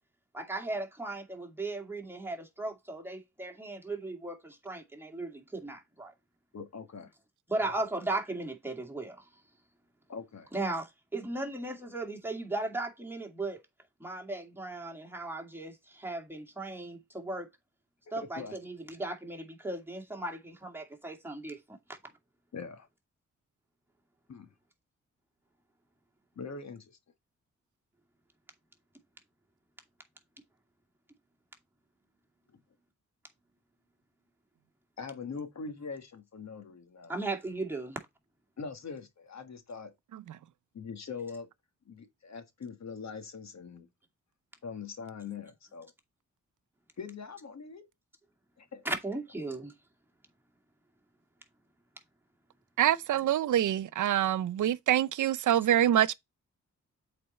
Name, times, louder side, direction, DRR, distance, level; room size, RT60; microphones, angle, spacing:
voice 1, 0.3-6.1 7.5-9.3 10.5-13.6 14.0-17.5 18.1-21.8 37.1-38.0 48.8-49.7, right 2 dB, 5° right, 2.3 m, -37 dB
voice 2, 6.5-7.1 7.6-7.7 10.1-10.5 18.1-18.6 22.5-22.9 24.3-24.5 26.3-27.0 35.0-37.1 38.6-39.9 40.7-41.5 41.8-43.9 44.6-45.9 47.0-47.9 48.6-48.8, left 5 dB, 60° left, 1.6 m, -42 dB
voice 3, 52.8-56.1, right 11 dB, 80° right, 0.6 m, -25 dB
7.7 x 4.4 x 4.2 m
cardioid pair, 65°, 30 cm